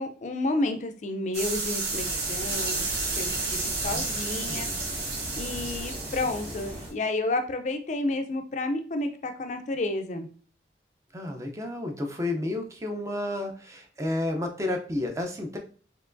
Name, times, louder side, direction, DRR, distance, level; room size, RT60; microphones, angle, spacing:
voice 1, 0.0-2.8 3.2-4.7 5.3-10.3, left 2 dB, 45° left, 6 dB, 0.4 m, -31 dB
sound 1, 1.3-6.9, right 3 dB, 70° right, 1.1 m, -31 dB
sound 2, 1.9-6.9, equal, 35° right, 1.5 m, -40 dB
voice 2, 3.9-4.8 11.1-15.6, left 1 dB, 15° right, 3 dB, 0.5 m, -32 dB
4.5 x 2.9 x 2.5 m, 0.41 s
head